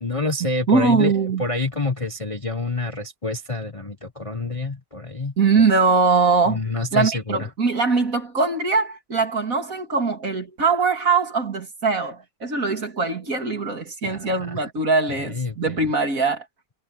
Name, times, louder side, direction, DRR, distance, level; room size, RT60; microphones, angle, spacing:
voice 1, 0.0-5.3 6.4-7.5 14.0-14.7 15.1-15.8, left 3 dB, 20° left, 1.1 m, -28 dB
voice 2, 0.7-1.4 5.4-6.6 6.9-16.4, right 4 dB, 50° right, 3.2 m, -21 dB
omnidirectional pair, 1.8 m